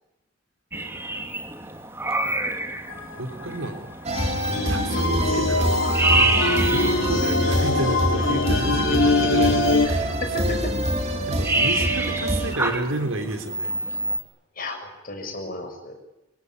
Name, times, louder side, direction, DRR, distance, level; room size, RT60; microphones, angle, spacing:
sound 1, 0.7-14.2, right 2 dB, 10° right, 2.6 m, -29 dB
sound 2, 2.9-3.1 3.4-3.7 4.1-9.9, left 3 dB, 65° left, 3.2 m, -23 dB
voice 1, 3.2-5.8 6.1-10.6 11.3-13.7, right 1 dB, 75° right, 6 dB, 3.8 m, -31 dB
sound 3, 4.0-12.5, right 1 dB, 30° right, 3.7 m, -25 dB
voice 2, 10.2-10.7 14.5-16.0, left 2 dB, 40° left, 5 dB, 6.6 m, -33 dB
25.5 x 22.5 x 9.8 m, 0.94 s
head